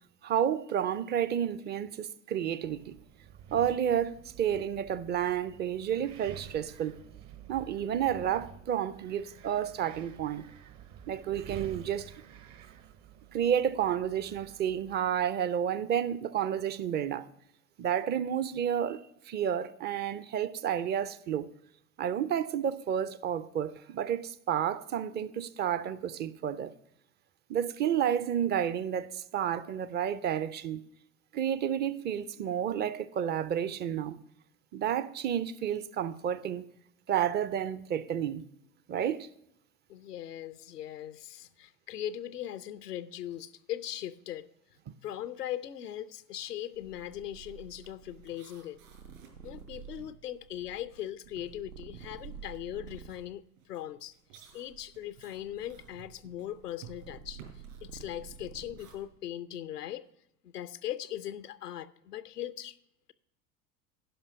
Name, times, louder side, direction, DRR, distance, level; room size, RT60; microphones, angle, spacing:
voice 1, 0.2-2.9 3.5-7.0 7.5-10.4 11.1-12.1 13.3-17.3 17.8-19.0 19.3-21.5 22.0-26.7 27.5-30.8 31.3-34.2 34.7-36.7 37.1-38.4 38.9-39.3, right 9 dB, 25° right, 0.4 m, -31 dB
Wind, 2.6-15.3, right 9 dB, 40° right, 0.8 m, -50 dB
voice 2, 39.9-44.5 45.0-48.8 49.4-53.4 53.7-54.1 54.5-57.4 57.8-60.1 60.4-62.8, left 12 dB, 90° left, 0.6 m, -39 dB
sound 1, 46.3-46.6 46.9-50.9 51.3-59.0, right 8 dB, 60° right, 3.5 m, -57 dB
Purr, 46.7-53.3 53.9-59.2, right 7 dB, 90° right, 0.9 m, -50 dB
11.0 x 5.5 x 6.5 m
figure-of-eight pair, 75°, 46 cm